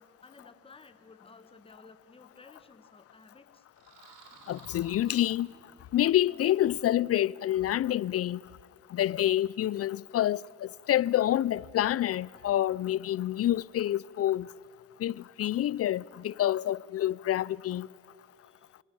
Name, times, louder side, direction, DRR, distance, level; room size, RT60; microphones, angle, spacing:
voice 1, 0.0-3.6 4.3-4.4 18.4-18.7, left 3 dB, 20° left, 1.4 m, -55 dB
sound 1, 3.7-6.0, right 4 dB, 90° right, 3.5 m, -55 dB
voice 2, 4.5-5.5 5.9-8.4 8.9-14.5 15.0-17.9, left 12 dB, 50° left, 0.5 m, -27 dB
27.5 x 18.5 x 7.0 m
cardioid pair, 90°, 30 cm